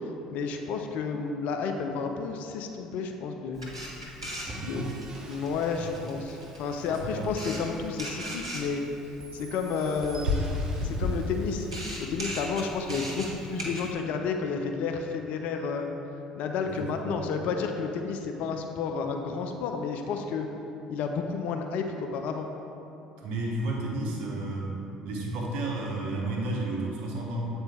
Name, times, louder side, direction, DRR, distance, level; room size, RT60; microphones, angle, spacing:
voice 1, 0.3-3.8 4.6-4.9 5.2-8.8 9.3-11.7 12.0-15.9 16.4-20.5 20.9-22.5, left 5 dB, 55° left, 4 dB, 0.4 m, -31 dB
Camera, 3.5-13.9, left 1 dB, 85° right, 0.8 m, -35 dB
voice 2, 4.4-4.9 5.8-5.9 6.9-7.3 16.7-17.2 23.2-24.7 25.0-27.5, right 2 dB, 60° right, -2 dB, 1.0 m, -32 dB
sound 1, 4.5-8.8 9.2-11.9, right 2 dB, 30° right, 0.9 m, -47 dB
7.8 x 4.3 x 3.4 m, 2.9 s
figure-of-eight pair, 55°, 3 cm